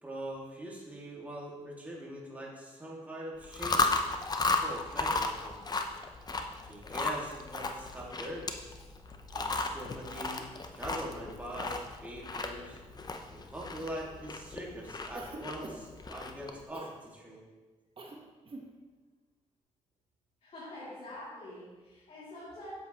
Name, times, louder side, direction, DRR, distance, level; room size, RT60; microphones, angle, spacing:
voice 1, 0.0-3.8 4.6-5.6 6.7-8.5 9.3-10.5 10.7-12.8 13.3-17.4, right 1 dB, 10° right, -4 dB, 2.1 m, -42 dB
Chewing mastication, 3.4-16.6, left 3 dB, 35° left, 0.7 m, -35 dB
Cough, 15.1-16.0 16.7-17.0 18.0-18.2 18.4-18.7, right 2 dB, 45° right, 1.2 m, -44 dB
voice 2, 20.4-22.7, left 1 dB, 60° left, -9 dB, 2.7 m, -46 dB
7.8 x 7.8 x 3.0 m, 1.3 s
cardioid pair, 80°, 12 cm